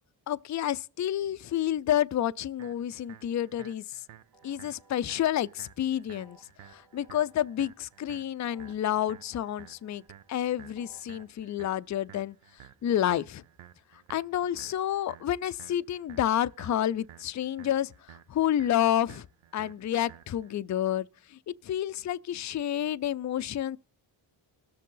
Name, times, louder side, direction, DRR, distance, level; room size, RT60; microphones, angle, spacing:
voice 1, 0.3-3.8 4.4-6.4 6.7-10.0 10.3-12.4 12.8-13.4 14.1-17.9 18.3-19.3 19.5-21.1 21.6-23.8, left 11 dB, 40° left, 0.4 m, -29 dB
sound 1, 2.6-20.6, right 11 dB, 80° right, 0.8 m, -54 dB
sound 2, 4.2-11.3, right 3 dB, 55° right, 2.2 m, -62 dB
19.5 x 6.6 x 3.8 m
cardioid pair, 60°, 49 cm